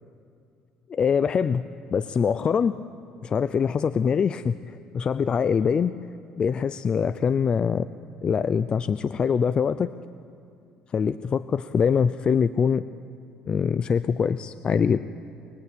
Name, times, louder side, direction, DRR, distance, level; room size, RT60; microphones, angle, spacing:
voice 1, 0.9-1.6 1.9-2.8 3.2-5.9 6.4-7.9 8.2-9.9 10.9-12.8 13.5-15.1, left 6 dB, 35° left, 12 dB, 0.6 m, -23 dB
24.0 x 23.0 x 8.6 m, 2.5 s
cardioid pair, 110°, 3 cm